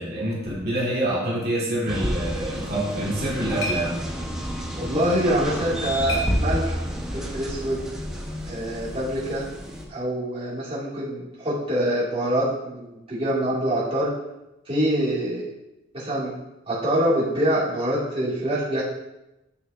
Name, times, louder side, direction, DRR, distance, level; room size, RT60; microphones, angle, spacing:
voice 1, 0.0-4.0, right 1 dB, 55° right, -6 dB, 2.3 m, -26 dB
sound 1, 1.9-9.8, equal, 5° right, 1.1 m, -30 dB
sound 2, 2.8-7.1, left 1 dB, 75° left, 1.4 m, -37 dB
voice 2, 4.8-6.8 7.1-7.8 8.4-9.5 9.9-14.1 14.7-15.5 15.9-16.3 16.7-18.8, right 1 dB, 30° right, -9 dB, 2.4 m, -25 dB
9.6 x 6.8 x 2.7 m, 0.95 s
head